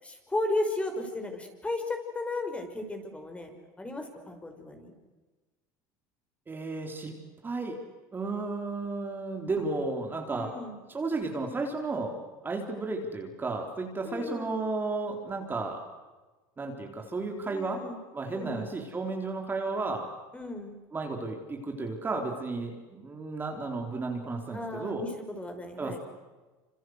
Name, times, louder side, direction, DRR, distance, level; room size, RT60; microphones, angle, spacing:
voice 1, 0.0-3.5 3.8-4.9 10.3-10.8 14.0-14.6 17.5-18.0 18.3-18.7 20.3-20.8 24.5-26.0, left 2 dB, 15° left, 5 dB, 5.5 m, -35 dB
voice 2, 6.5-7.2 7.4-7.8 8.1-10.5 10.9-12.2 12.4-15.8 16.6-17.8 18.1-20.1 20.9-25.0 25.8-26.0, right 3 dB, 20° right, 2 dB, 4.2 m, -33 dB
27.0 x 26.5 x 8.1 m, 1.2 s
supercardioid pair, 100°, 9 cm